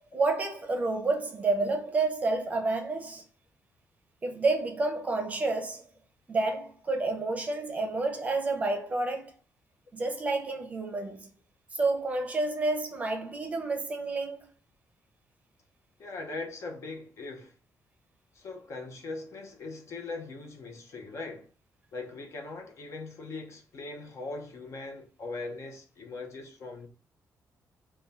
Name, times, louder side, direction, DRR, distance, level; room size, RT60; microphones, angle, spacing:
voice 1, 0.0-3.2 4.2-5.9 6.3-9.3 9.9-11.3 11.7-14.5, right 3 dB, 25° right, 0.6 m, -29 dB
voice 2, 16.0-17.5 18.3-21.5 21.9-26.9, left 3 dB, 50° left, 0.8 m, -40 dB
3.6 x 2.3 x 4.0 m
wide cardioid pair, 180°, 6 cm